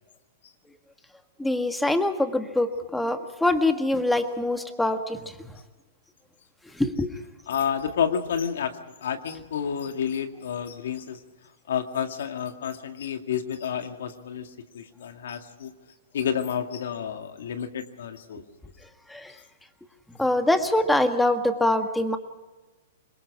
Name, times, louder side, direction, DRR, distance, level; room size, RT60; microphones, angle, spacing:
voice 1, 1.4-5.3 6.8-7.1 19.1-19.3 20.2-22.2, left 1 dB, 5° left, 7 dB, 1.7 m, -24 dB
voice 2, 7.5-8.7 9.0-11.2 11.7-14.5 14.7-15.7 16.1-18.4, left 8 dB, 70° left, 6 dB, 2.2 m, -30 dB
25.5 x 21.5 x 4.9 m, 1.2 s
hypercardioid pair, 125°, 0 cm